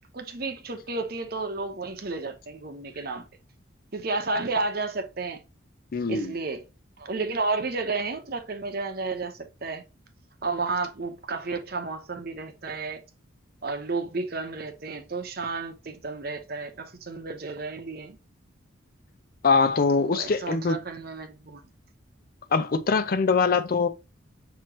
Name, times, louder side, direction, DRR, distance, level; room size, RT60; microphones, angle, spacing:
voice 1, 0.1-3.3 3.9-5.4 6.1-6.6 7.0-9.8 10.4-13.0 13.6-18.2 19.9-21.6, right 3 dB, 50° right, 0.9 m, -32 dB
voice 2, 5.9-6.4 19.4-20.8 22.5-23.9, left 4 dB, 45° left, 0.4 m, -23 dB
6.1 x 3.0 x 2.9 m
head